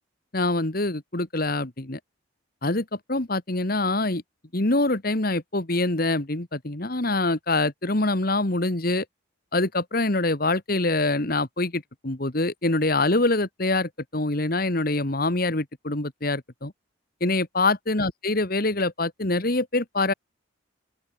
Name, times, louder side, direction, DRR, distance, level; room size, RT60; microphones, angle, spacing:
voice 1, 0.3-2.0 2.6-4.2 4.5-9.1 9.5-16.7 17.2-20.1, left 2 dB, 45° left, 1.7 m, -25 dB
open air
head